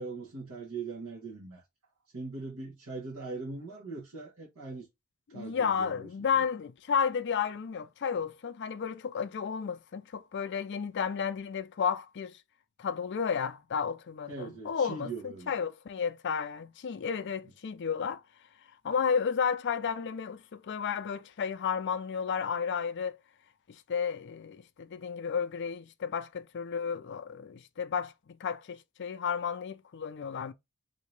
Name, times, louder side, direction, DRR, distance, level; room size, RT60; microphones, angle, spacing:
voice 1, 0.0-1.6 2.1-4.9 5.3-6.1 6.3-6.4 14.3-15.5, right 3 dB, 70° right, 1.2 m, -41 dB
voice 2, 5.3-12.4 12.8-18.2 18.8-23.2 23.7-30.5, left 6 dB, 50° left, 0.4 m, -32 dB
3.7 x 2.7 x 3.1 m
head